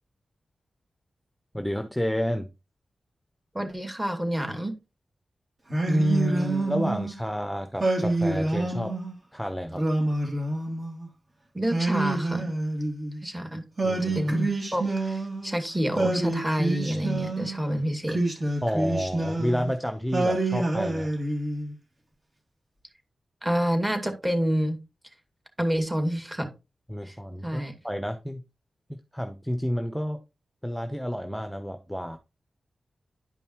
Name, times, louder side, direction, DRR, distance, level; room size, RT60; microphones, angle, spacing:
voice 1, 1.5-2.5 5.9-8.9 9.3-9.8 13.8-14.2 18.6-21.1 26.9-28.4 28.9-30.2 30.6-32.2, equal, 5° left, 0.9 m, -29 dB
voice 2, 3.5-4.7 11.5-12.5 13.2-13.6 14.0-18.2 23.4-24.8 25.6-26.5 27.0-27.2 27.4-27.7, equal, 15° right, 2.2 m, -28 dB
Singing, 5.7-7.2 7.8-9.1 9.7-11.1 11.7-13.2 13.8-15.6 16.0-17.6 18.1-19.7 20.1-21.7, right 2 dB, 45° right, 2.9 m, -27 dB
11.0 x 5.3 x 3.1 m
cardioid pair, 75°, 0 cm